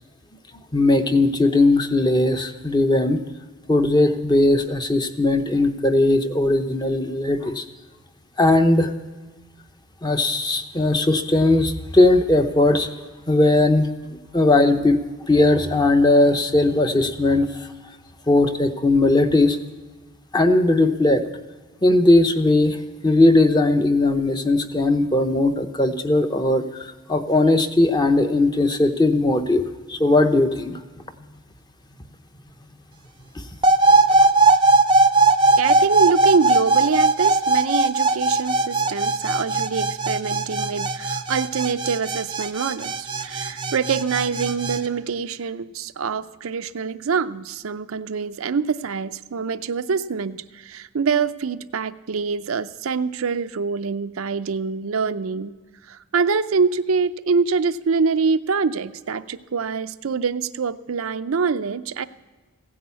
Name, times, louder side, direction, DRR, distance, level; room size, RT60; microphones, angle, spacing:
voice 1, 0.7-3.2 3.7-7.6 8.4-8.9 10.0-12.9 13.3-13.9 14.3-15.0 15.3-17.5 18.3-19.6 20.3-21.3 21.8-22.8 23.0-29.6 29.9-30.8, left 2 dB, 20° left, 7 dB, 0.8 m, -18 dB
sound 1, 33.6-44.8, right 3 dB, 25° right, 0.6 m, -19 dB
voice 2, 35.6-55.5 55.9-62.1, right 5 dB, 80° right, 11 dB, 0.5 m, -25 dB
16.0 x 10.0 x 8.3 m, 1.3 s
head